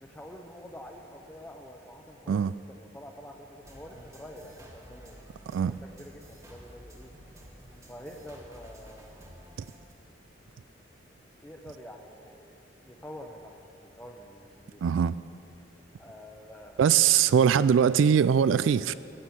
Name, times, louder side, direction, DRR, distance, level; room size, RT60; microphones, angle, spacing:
voice 1, 0.0-2.4 2.7-5.2 5.9-7.1 7.9-9.4 11.4-14.9 16.0-16.8, equal, 10° left, 0.7 m, -47 dB
sound 1, 3.6-9.9, equal, 15° right, 1.4 m, -51 dB
voice 2, 14.8-15.2 16.8-18.9, right 8 dB, 85° right, 0.3 m, -22 dB
17.0 x 6.3 x 9.2 m
head